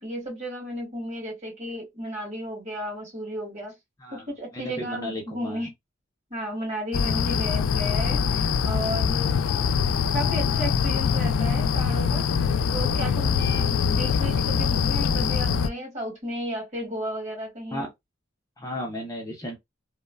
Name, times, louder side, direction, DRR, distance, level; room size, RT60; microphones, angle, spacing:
voice 1, 0.0-3.7 4.1-5.7 6.3-9.4 10.1-17.9, equal, 35° right, 1.7 m, -34 dB
voice 2, 4.0-5.7 17.7-17.9 18.6-19.6, equal, 15° left, 0.6 m, -35 dB
sound 1, 6.9-15.7, left 6 dB, 90° left, 0.3 m, -23 dB
3.0 x 2.0 x 2.2 m
head